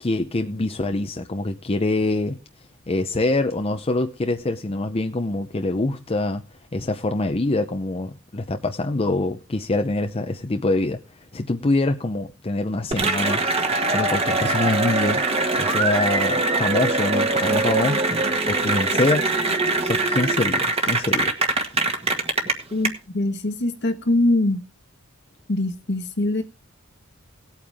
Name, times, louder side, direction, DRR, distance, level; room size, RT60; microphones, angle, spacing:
voice 1, 0.0-2.4 2.9-6.4 6.7-11.0 11.3-13.4 13.9-15.2 15.6-18.0 18.5-19.3 19.8-21.3, left 2 dB, 30° left, 0.6 m, -24 dB
Cheering / Applause, 12.9-22.9, right 2 dB, 30° right, 1.6 m, -22 dB
voice 2, 22.7-24.6 25.5-26.4, left 1 dB, 55° left, 1.5 m, -23 dB
18.0 x 8.7 x 3.5 m
head